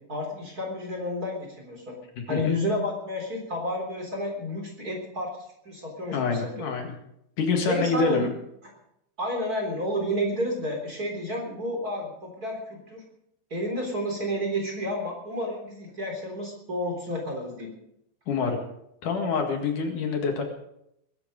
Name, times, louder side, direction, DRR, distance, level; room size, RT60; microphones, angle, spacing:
voice 1, 0.1-2.0 2.3-5.3 5.7-6.8 7.7-8.3 9.2-13.0 13.5-17.7, equal, 25° right, 1 dB, 3.8 m, -31 dB
voice 2, 2.2-2.5 6.1-6.9 7.4-8.3 18.3-18.6 19.0-20.4, left 4 dB, 65° left, 4 dB, 3.3 m, -26 dB
21.5 x 12.0 x 5.2 m, 0.78 s
omnidirectional pair, 4.1 m